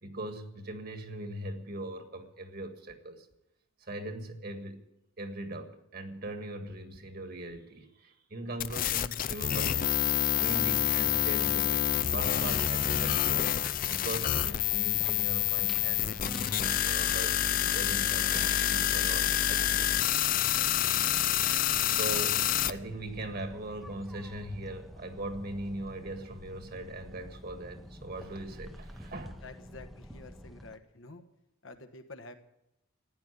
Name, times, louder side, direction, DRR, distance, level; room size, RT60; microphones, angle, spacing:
voice 1, 0.0-3.3 3.8-4.8 5.2-10.0 10.4-13.5 13.9-17.4 17.7-19.9 21.9-29.4, right 1 dB, 45° right, 6 dB, 1.8 m, -40 dB
sound 1, 8.6-22.7, left 11 dB, 40° left, 0.5 m, -28 dB
sound 2, 11.9-30.8, equal, ahead, 0.8 m, -47 dB
voice 2, 29.4-31.2 31.6-32.3, left 3 dB, 70° left, 8 dB, 1.4 m, -48 dB
15.0 x 10.5 x 8.3 m, 0.87 s
head